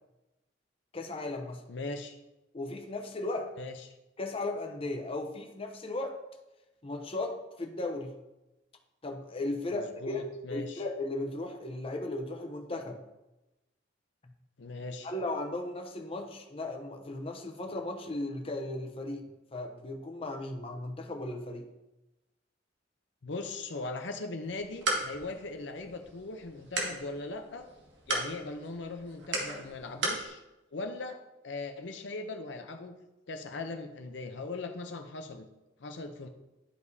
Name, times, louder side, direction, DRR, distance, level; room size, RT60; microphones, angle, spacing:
voice 1, 0.9-1.6 2.5-3.5 4.2-6.2 6.8-8.2 9.0-10.2 10.5-13.0 14.2-14.3 15.0-19.2 19.5-21.7, left 2 dB, 30° left, 4 dB, 0.7 m, -36 dB
voice 2, 1.7-2.2 3.6-3.7 9.7-10.8 14.6-15.1 23.2-27.7 28.1-30.4 30.7-31.2 31.4-32.9 33.3-35.5 35.8-36.3, left 3 dB, 70° left, 6 dB, 0.7 m, -39 dB
sound 1, 24.4-30.3, right 2 dB, 75° right, 1.7 m, -36 dB
11.5 x 4.9 x 2.7 m, 0.99 s
head